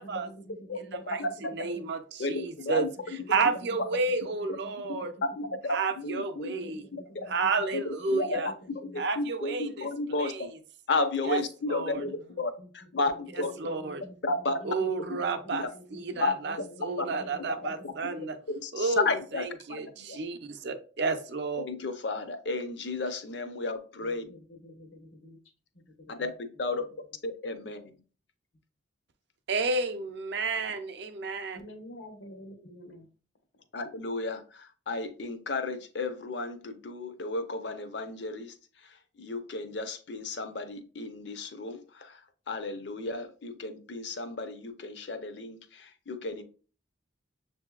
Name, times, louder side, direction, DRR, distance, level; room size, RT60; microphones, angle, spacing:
voice 1, 0.0-1.9 3.0-5.6 6.4-9.1 11.8-12.7 13.4-18.3 24.0-25.4 25.7-26.4 26.7-26.9 31.5-33.1 33.5-33.6, equal, 90° left, 1.0 m, -49 dB
voice 2, 1.5-2.9 3.3-5.1 5.7-6.8 7.3-8.5 9.0-9.9 10.2-10.5 11.3-11.4 11.7-12.0 13.6-14.0 14.6-15.6 15.9-18.4 18.7-19.1 19.3-21.6 29.5-31.6, right 4 dB, 60° right, 0.5 m, -31 dB
voice 3, 2.2-2.9 5.4-5.5 6.0-6.5 7.1-7.3 7.7-7.8 8.1-8.4 9.2-10.5 10.9-13.5 14.2-14.6 15.5-15.6 16.2-16.3 17.0-17.1 18.6-19.4 19.8-20.2 21.6-24.2 26.1-26.3 26.6-26.8 27.2-27.9 33.7-46.4, left 3 dB, 60° left, 0.6 m, -33 dB
7.0 x 2.7 x 2.3 m
head